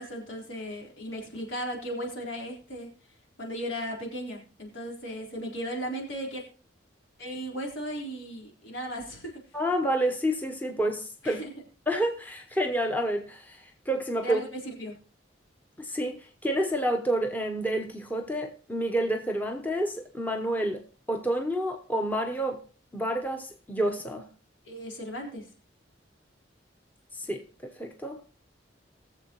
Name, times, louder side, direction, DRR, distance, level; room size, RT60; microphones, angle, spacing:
voice 1, 0.0-2.9 3.4-6.4 7.2-9.4 11.2-11.5 14.2-15.0 24.7-25.4, equal, 80° left, 3.9 m, -36 dB
voice 2, 9.5-11.4 11.9-14.4 15.8-20.8 21.1-22.6 22.9-24.3 27.1-28.2, right 1 dB, 10° left, 0.8 m, -29 dB
21.0 x 7.3 x 3.0 m
head